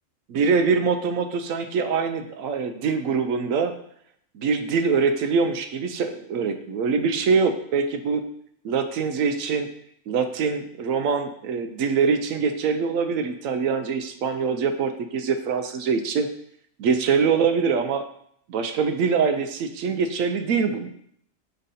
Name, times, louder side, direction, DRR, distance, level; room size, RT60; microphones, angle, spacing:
voice 1, 0.3-3.7 4.3-8.2 8.6-9.7 10.1-16.3 16.8-18.0 18.5-20.9, right 5 dB, 85° right, 8 dB, 1.0 m, -24 dB
5.2 x 4.5 x 4.1 m, 0.68 s
omnidirectional pair, 1.4 m